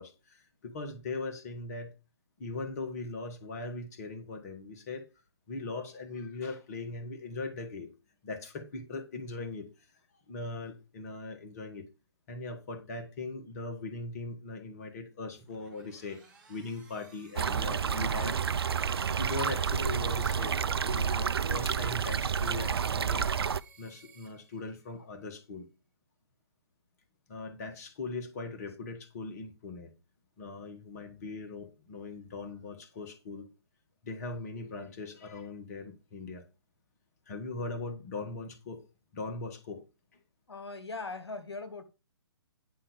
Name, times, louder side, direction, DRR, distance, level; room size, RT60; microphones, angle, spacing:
voice 1, 0.0-1.9 2.4-5.1 5.5-7.9 8.2-9.9 10.3-11.9 12.3-16.2 16.5-18.4 19.2-20.6 20.8-25.7 27.3-29.9 30.4-33.5 34.0-36.4 37.3-38.9 39.1-39.8, left 3 dB, 35° left, 1.6 m, -40 dB
sound 1, 15.3-25.0, right 4 dB, 5° right, 4.7 m, -59 dB
sound 2, 17.4-23.6, right 7 dB, 65° right, 0.4 m, -30 dB
voice 2, 40.5-41.8, left 3 dB, 75° left, 1.7 m, -40 dB
10.0 x 5.7 x 5.2 m
figure-of-eight pair, 135°, 14 cm